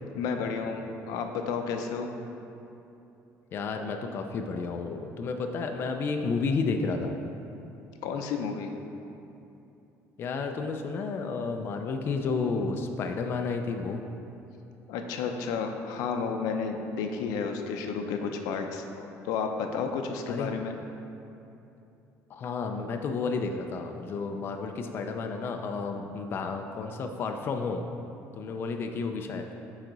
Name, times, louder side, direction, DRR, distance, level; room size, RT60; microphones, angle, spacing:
voice 1, 0.1-2.1 8.0-8.7 14.9-20.7, left 5 dB, 90° left, 4 dB, 0.6 m, -32 dB
voice 2, 3.5-7.1 10.2-14.0 20.3-20.5 22.3-27.8 28.4-29.5, left 4 dB, 40° left, 4 dB, 0.4 m, -31 dB
9.1 x 4.0 x 3.9 m, 2.8 s
cardioid pair, 150°, 6 cm